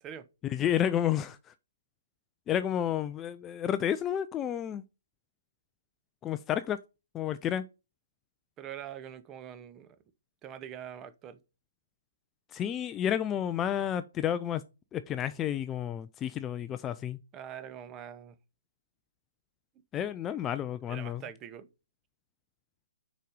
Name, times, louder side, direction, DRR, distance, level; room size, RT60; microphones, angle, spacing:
voice 1, 0.4-1.5 2.5-4.8 6.2-6.8 7.1-7.7 12.5-14.6 14.9-17.2 19.9-21.2, left 10 dB, 15° left, 0.4 m, -31 dB
voice 2, 8.6-10.0 10.4-11.4 17.3-18.3 20.5-21.7, right 9 dB, 20° right, 0.8 m, -44 dB
6.4 x 5.1 x 5.4 m
figure-of-eight pair, 130°, 0 cm